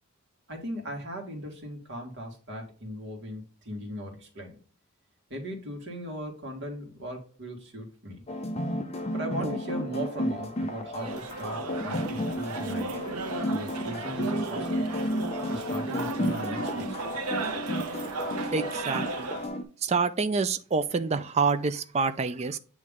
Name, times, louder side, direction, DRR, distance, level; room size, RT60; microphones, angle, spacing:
voice 1, 0.5-4.6 5.3-8.3 9.1-13.0 13.5-14.8 15.5-17.2, equal, 55° right, 1.8 m, -38 dB
sound 1, 8.3-19.6, left 1 dB, 30° left, 0.7 m, -32 dB
sound 2, 11.0-19.5, right 4 dB, 85° right, 0.8 m, -35 dB
voice 2, 18.5-19.3 19.8-22.6, right 4 dB, 30° right, 0.4 m, -27 dB
8.4 x 3.1 x 3.6 m
head